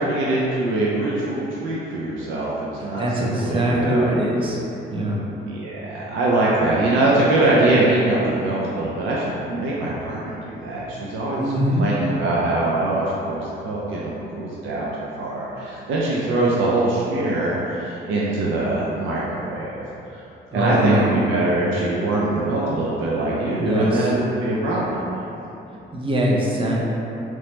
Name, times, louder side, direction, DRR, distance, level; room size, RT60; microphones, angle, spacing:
voice 1, 0.0-2.5 2.8-4.1 5.4-11.4 11.8-14.9 15.2-19.8 20.5-25.0, right 2 dB, 80° right, -6 dB, 0.4 m, -23 dB
voice 2, 2.8-4.6 4.9-5.2 11.4-11.9 20.5-21.2 23.6-24.1 25.7-26.8, right 1 dB, 25° right, -4 dB, 0.5 m, -22 dB
3.0 x 2.0 x 2.9 m, 3.0 s
cardioid pair, 90°, 20 cm